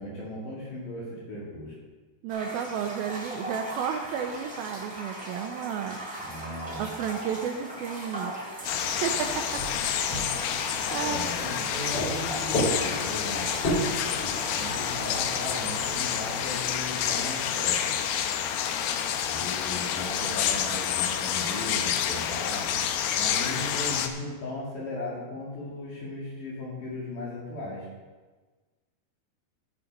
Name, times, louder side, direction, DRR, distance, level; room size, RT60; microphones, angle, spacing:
voice 1, 0.0-1.7 6.2-6.9 10.9-13.8 14.5-17.9 19.2-22.8 23.2-27.9, left 1 dB, 55° left, -5 dB, 3.4 m, -37 dB
voice 2, 2.2-6.0 6.8-8.3 9.0-9.6 10.9-11.3 11.6-11.7, right 7 dB, 80° right, 5 dB, 2.3 m, -32 dB
sound 1, 2.3-15.9, right 1 dB, 10° right, 2.4 m, -39 dB
sound 2, 8.6-9.1 9.6-11.7 11.9-16.3 16.6-16.7, equal, 40° left, 4.1 m, -33 dB
sound 3, 8.7-24.1, left 9 dB, 85° left, 2.5 m, -29 dB
14.5 x 6.2 x 5.3 m, 1.3 s
omnidirectional pair, 4.7 m